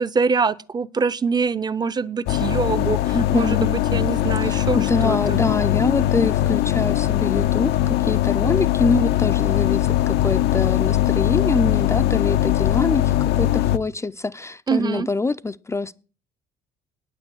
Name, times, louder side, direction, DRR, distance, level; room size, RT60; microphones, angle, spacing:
voice 1, 0.0-5.4 14.7-15.1, right 5 dB, 25° right, 0.7 m, -24 dB
sound 1, 2.3-13.8, left 14 dB, 75° left, 0.7 m, -20 dB
voice 2, 3.1-3.7 4.4-15.9, left 3 dB, 15° left, 0.5 m, -25 dB
9.8 x 9.1 x 7.6 m
cardioid pair, 110°, 17 cm